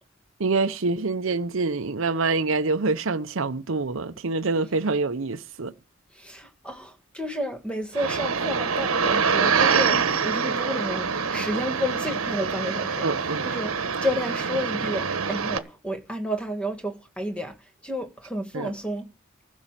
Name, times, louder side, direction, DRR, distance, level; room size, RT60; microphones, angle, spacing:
voice 1, 0.4-5.7 13.0-13.5 18.5-18.7, right 3 dB, 70° right, 0.7 m, -26 dB
voice 2, 6.1-17.5 17.8-19.1, equal, 5° left, 1.6 m, -31 dB
sound 1, 7.9-15.6, right 5 dB, 90° right, 1.2 m, -25 dB
15.5 x 6.3 x 7.3 m
head